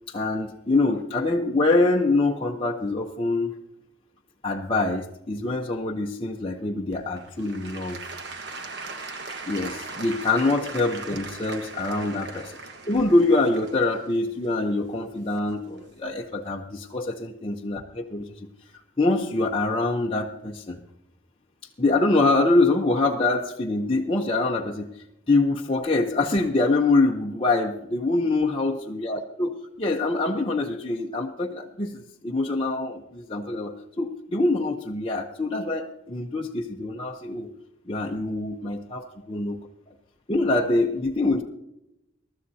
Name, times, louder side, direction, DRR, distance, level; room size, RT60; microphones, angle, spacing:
voice 1, 0.1-3.5 4.4-8.0 9.5-12.3 12.8-18.5 19.0-20.8 21.8-24.9 25.3-37.5 37.9-39.0 39.3-39.6 40.3-41.4, left 2 dB, 25° left, -1 dB, 0.8 m, -24 dB
Applause / Crowd, 6.9-15.8 16.4-16.5, right 3 dB, 55° right, 1.4 m, -39 dB
22.0 x 13.0 x 2.8 m, 0.86 s
head